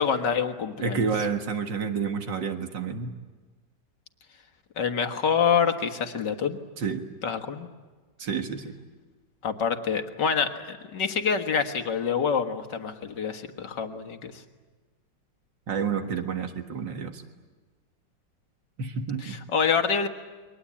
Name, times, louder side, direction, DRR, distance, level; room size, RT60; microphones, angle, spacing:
voice 1, 0.0-1.1 4.8-6.6 7.2-7.7 9.4-14.3 19.2-20.1, left 6 dB, 75° left, 6 dB, 2.3 m, -26 dB
voice 2, 0.8-3.1 6.8-7.0 8.2-8.7 15.7-17.2 18.8-19.4, right 6 dB, 90° right, 5 dB, 2.4 m, -29 dB
29.0 x 23.0 x 8.6 m, 1.3 s
omnidirectional pair, 1.9 m